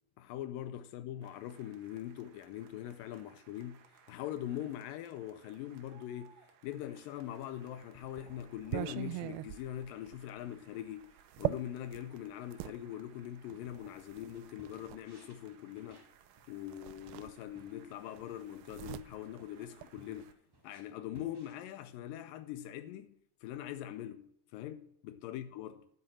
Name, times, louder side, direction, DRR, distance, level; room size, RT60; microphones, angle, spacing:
voice 1, 0.2-11.1 11.4-16.1 16.5-20.3 20.6-23.2 23.4-25.9, left 12 dB, 80° left, 2.1 m, -42 dB
sound 1, 1.2-20.3, right 8 dB, 70° right, 2.7 m, -64 dB
sound 2, 7.4-12.8 13.7-15.0 16.3-16.4 16.7-17.8 18.1-20.3, right 17 dB, 85° right, 2.4 m, -41 dB
sound 3, 12.9-21.5, right 1 dB, 10° right, 1.3 m, -63 dB
9.9 x 8.4 x 6.3 m
omnidirectional pair, 4.2 m